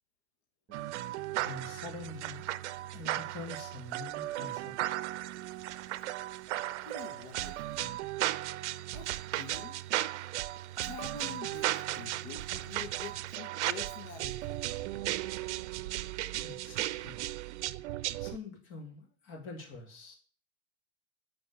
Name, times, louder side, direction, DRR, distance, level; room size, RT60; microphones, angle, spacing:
Bass guitar, 0.7-4.8, right 1 dB, 25° right, 1.9 m, -61 dB
sound 1, 0.7-18.4, right 15 dB, 85° right, 0.5 m, -36 dB
voice 1, 1.4-2.4 2.9-4.7 16.4-17.2 18.2-20.2, left 3 dB, 35° left, 1 dB, 2.9 m, -45 dB
voice 2, 6.8-8.0 8.9-9.8 10.8-14.6, left 7 dB, 70° left, 3 dB, 1.5 m, -47 dB
7.8 x 4.5 x 6.7 m, 0.40 s
supercardioid pair, 150°, 34 cm